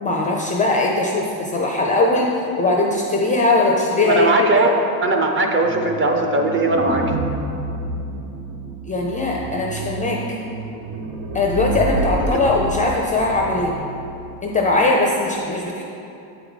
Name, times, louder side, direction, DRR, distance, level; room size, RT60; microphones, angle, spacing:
voice 1, 0.0-2.3 2.6-4.6 8.9-10.2 11.3-13.7 14.4-15.8, left 2 dB, 20° left, -1 dB, 0.4 m, -20 dB
voice 2, 4.0-7.0 12.3-12.4, right 2 dB, 30° right, 2 dB, 0.6 m, -19 dB
sound 1, 5.6-14.4, right 2 dB, 85° right, 1.0 m, -28 dB
8.2 x 4.7 x 4.0 m, 2.8 s
cardioid pair, 135°, 45 cm